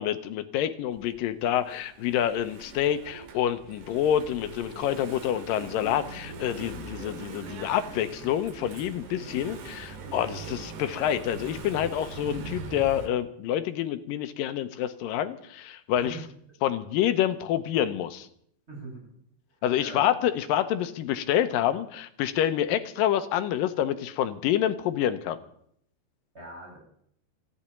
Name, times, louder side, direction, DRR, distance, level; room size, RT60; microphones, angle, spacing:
voice 1, 0.0-16.2 16.6-18.3 19.6-25.4, left 11 dB, 75° left, 10 dB, 2.2 m, -27 dB
Engine / Mechanisms, 0.9-13.1, right 4 dB, 80° right, 3.7 m, -42 dB
voice 2, 9.2-9.6 15.9-16.2 18.7-19.1 19.5-20.1 26.3-26.8, right 1 dB, 15° right, -4 dB, 8.3 m, -42 dB
14.0 x 8.6 x 9.9 m, 0.67 s
omnidirectional pair, 4.5 m